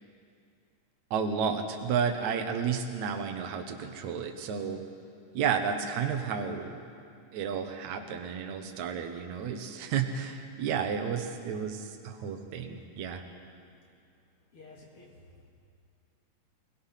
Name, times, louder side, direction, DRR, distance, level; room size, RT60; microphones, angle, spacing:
voice 1, 1.1-4.8 5.3-6.8 7.3-13.2, right 6 dB, 70° right, 5 dB, 2.5 m, -32 dB
voice 2, 14.5-15.5, left 3 dB, 45° left, -1 dB, 2.7 m, -53 dB
23.0 x 21.0 x 5.8 m, 2.3 s
omnidirectional pair, 3.6 m